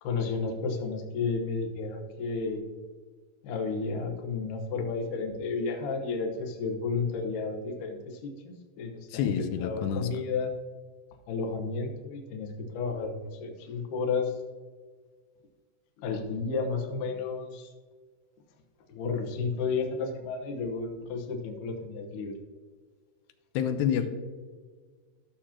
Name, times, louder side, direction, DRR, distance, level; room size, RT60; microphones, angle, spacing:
voice 1, 0.0-2.6 3.4-10.5 11.3-14.3 16.0-17.7 18.9-22.3 24.0-24.1, left 4 dB, 65° left, 3 dB, 2.2 m, -32 dB
voice 2, 9.1-10.1 23.5-24.1, left 8 dB, 90° left, 8 dB, 2.8 m, -28 dB
14.0 x 6.6 x 2.9 m, 1.5 s
omnidirectional pair, 4.8 m